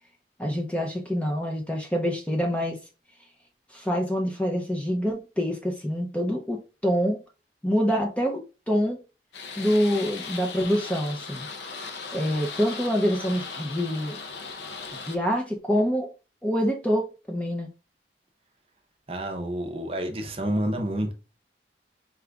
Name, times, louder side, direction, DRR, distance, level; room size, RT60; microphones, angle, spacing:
voice 1, 0.4-2.8 3.7-7.2 7.6-8.4 8.7-9.0 9.6-11.5 12.1-14.2 15.1-16.1 16.4-17.7, equal, 5° left, 0.6 m, -26 dB
sound 1, 9.3-15.2, left 4 dB, 80° left, 0.6 m, -38 dB
voice 2, 19.1-21.1, right 1 dB, 35° right, 0.6 m, -29 dB
4.8 x 2.5 x 3.3 m
head